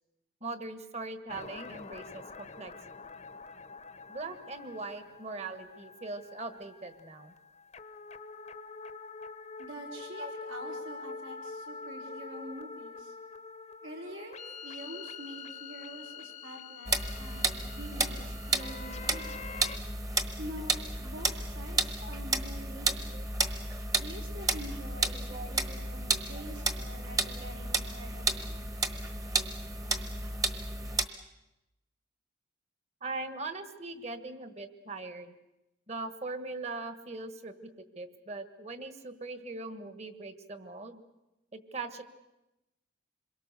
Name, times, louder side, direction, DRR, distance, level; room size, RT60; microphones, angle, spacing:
voice 1, 0.4-2.7 4.1-7.3 10.2-10.3 19.1-19.4 22.0-22.1 23.1-23.2 25.3-25.5 27.4-27.5 33.0-35.3 35.9-37.7 37.9-41.0 41.5-42.0, right 3 dB, 35° right, 10 dB, 1.5 m, -40 dB
sound 1, 1.3-19.8, left 4 dB, 35° left, 0.9 m, -45 dB
voice 2, 9.6-13.1 13.8-19.6 20.4-23.2 24.0-28.7, right 1 dB, 80° right, 1 dB, 4.4 m, -46 dB
sound 2, 16.9-31.1, right 3 dB, 15° right, 1.2 m, -32 dB
27.0 x 22.5 x 6.8 m, 0.96 s
head